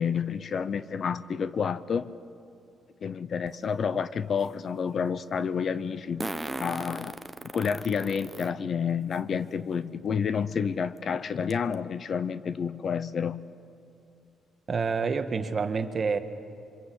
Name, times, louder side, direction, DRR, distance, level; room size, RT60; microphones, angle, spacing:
voice 1, 0.0-2.1 3.0-7.2 7.4-13.4, left 6 dB, 50° left, 15 dB, 0.8 m, -29 dB
Fart, 3.5-3.6 6.2-8.5 9.1-9.2 10.5-10.6 11.0-11.1 11.5-11.7, right 2 dB, 10° right, 0.9 m, -36 dB
voice 2, 14.7-16.2, right 5 dB, 40° right, 9 dB, 1.5 m, -28 dB
27.0 x 25.0 x 8.4 m, 2.5 s
cardioid pair, 105°, 0 cm